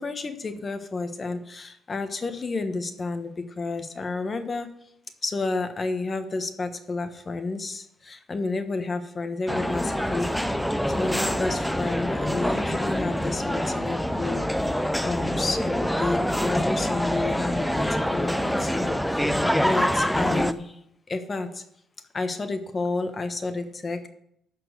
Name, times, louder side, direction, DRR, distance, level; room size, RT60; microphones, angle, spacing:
voice 1, 0.0-4.7 5.2-10.5 10.9-14.4 15.0-20.8 21.1-21.5 22.1-24.1, left 3 dB, 35° left, 8 dB, 1.2 m, -30 dB
sound 1, 9.5-20.5, equal, ahead, 0.5 m, -25 dB
12.5 x 4.5 x 6.6 m, 0.74 s
cardioid pair, 90°, 0 cm